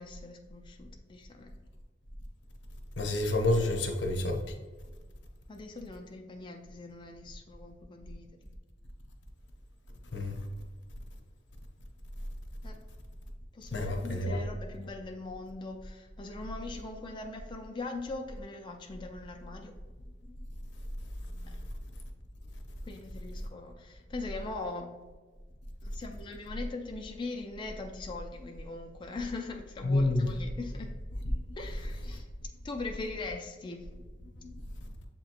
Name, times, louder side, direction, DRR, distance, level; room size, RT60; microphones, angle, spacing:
voice 1, 0.0-1.5 5.5-8.3 12.6-12.8 13.5-19.7 21.5-21.6 22.8-25.0 25.8-30.9 31.6-32.3 32.6-33.9, left 3 dB, 25° left, 0.4 m, -41 dB
voice 2, 3.0-4.4 10.1-10.4 13.7-14.4 29.8-30.3 34.4-34.5, left 2 dB, 80° left, 0.7 m, -28 dB
7.2 x 3.0 x 2.4 m
head